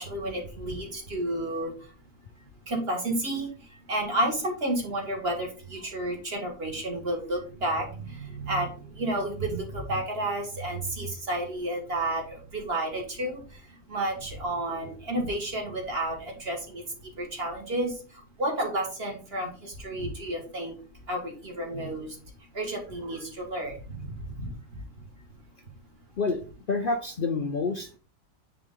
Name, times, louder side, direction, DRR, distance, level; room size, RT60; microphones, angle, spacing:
voice 1, 0.0-1.7 2.7-20.8 21.1-22.2 22.5-24.5, right 1 dB, 35° right, 1 dB, 1.9 m, -31 dB
voice 2, 26.7-28.0, left 3 dB, 85° left, 5 dB, 0.4 m, -28 dB
9.2 x 3.5 x 3.7 m, 0.38 s
omnidirectional pair, 1.8 m